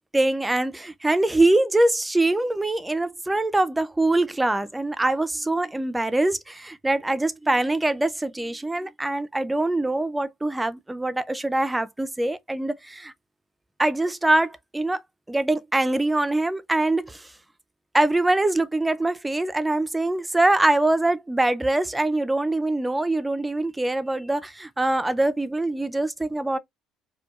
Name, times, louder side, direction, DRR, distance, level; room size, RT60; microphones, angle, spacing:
voice 1, 0.1-13.1 13.8-15.0 15.3-17.3 17.9-26.6, right 2 dB, 10° right, 0.4 m, -23 dB
4.5 x 2.2 x 2.3 m
cardioid pair, 135°, 0 cm